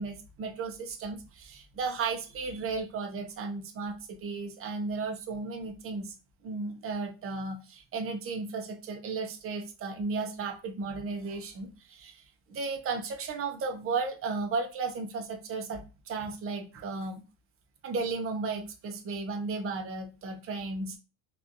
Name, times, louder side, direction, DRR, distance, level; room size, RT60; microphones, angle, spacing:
voice 1, 0.0-3.9 4.2-6.1 6.4-17.2 17.8-21.0, right 4 dB, 35° right, 3 dB, 0.6 m, -34 dB
2.9 x 2.5 x 2.5 m, 0.31 s
cardioid pair, 140°, 42 cm